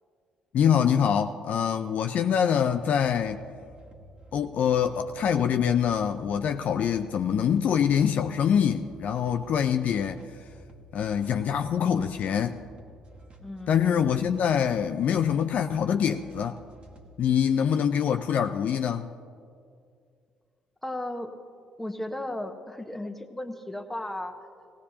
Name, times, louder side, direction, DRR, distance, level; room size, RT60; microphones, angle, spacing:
voice 1, 0.5-3.4 4.3-10.2 10.9-12.6 13.7-16.6 17.2-19.1, left 8 dB, 55° left, 7 dB, 0.4 m, -24 dB
sound 1, 2.6-17.2, right 1 dB, 40° right, 1.6 m, -51 dB
voice 2, 13.4-13.9 20.8-21.3 21.8-24.4, left 1 dB, 5° left, 5 dB, 1.2 m, -35 dB
18.0 x 16.0 x 2.8 m, 2.3 s
hypercardioid pair, 50°, 3 cm